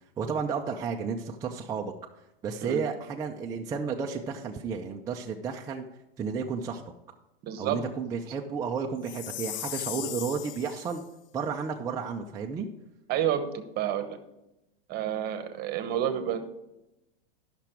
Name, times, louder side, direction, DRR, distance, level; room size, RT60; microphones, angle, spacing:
voice 1, 0.2-1.9 2.4-5.9 6.2-6.8 7.6-11.0 11.3-12.7, right 5 dB, 10° right, 1 dB, 0.4 m, -32 dB
voice 2, 7.4-7.8 13.1-14.2 14.9-16.4, right 10 dB, 30° right, 9 dB, 1.0 m, -29 dB
Chime, 9.0-11.0, left 14 dB, 65° left, 0.4 m, -37 dB
11.5 x 6.0 x 4.5 m, 0.91 s
hypercardioid pair, 135°, 30 cm